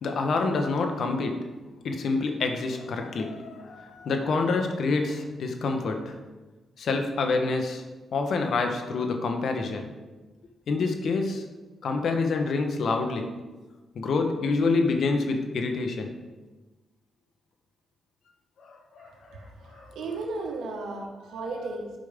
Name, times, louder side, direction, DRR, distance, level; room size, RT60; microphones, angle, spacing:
voice 1, 0.0-1.5 1.8-6.2 6.8-7.8 8.1-9.9 10.7-11.4 11.8-13.3 13.9-16.2 18.6-20.0 20.8-20.9, left 3 dB, 70° left, 4 dB, 1.1 m, -27 dB
voice 2, 19.0-21.9, right 3 dB, 80° right, 1 dB, 1.5 m, -35 dB
11.5 x 5.3 x 3.6 m, 1.2 s
cardioid pair, 65°, 0 cm